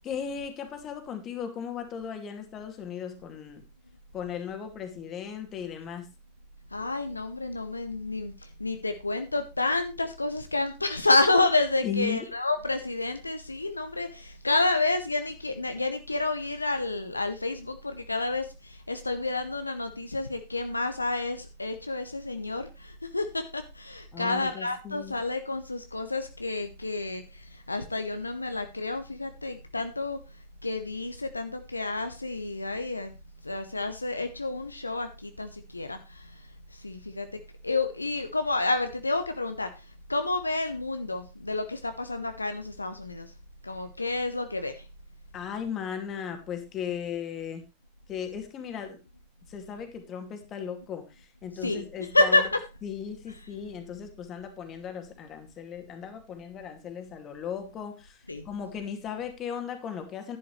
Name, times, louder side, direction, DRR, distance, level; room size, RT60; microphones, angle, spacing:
voice 1, 0.0-3.6 4.1-6.1 11.8-12.3 24.1-25.1 45.3-47.6 48.1-49.0 49.5-52.5 52.8-60.4, left 7 dB, 30° left, 6 dB, 2.3 m, -37 dB
voice 2, 6.7-30.2 30.6-33.1 33.4-36.4 36.7-43.3 43.6-44.9 51.6-51.8 52.1-52.6 58.3-58.4, left 2 dB, 80° left, 8 dB, 0.9 m, -29 dB
11.0 x 10.5 x 3.2 m, 0.27 s
figure-of-eight pair, 90°, 0 cm